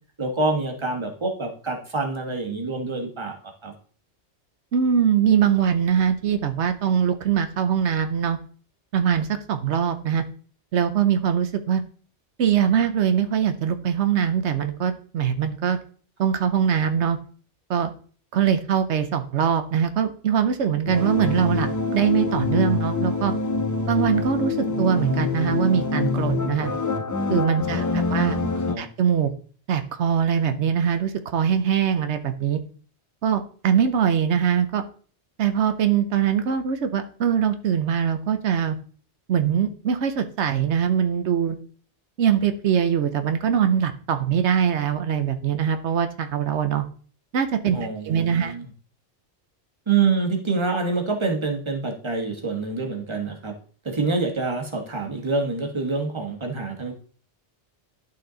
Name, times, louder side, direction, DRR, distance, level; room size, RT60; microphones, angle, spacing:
voice 1, 0.2-3.4 3.6-3.7 27.6-28.9 47.7-48.7 49.9-53.5 53.8-56.9, right 4 dB, 25° right, 3 dB, 1.4 m, -26 dB
voice 2, 4.7-8.4 8.9-10.2 10.7-11.8 12.4-15.8 16.2-17.2 17.7-17.9 18.3-23.3 23.9-26.7 27.3-28.4 28.8-29.3 29.7-32.6 33.2-34.8 35.4-38.8 39.3-41.6 42.2-46.8 47.3-48.5, right 8 dB, 85° right, 8 dB, 1.0 m, -22 dB
sound 1, 20.9-28.8, left 4 dB, 30° left, 0.3 m, -25 dB
11.5 x 4.4 x 3.9 m, 0.43 s
omnidirectional pair, 1.1 m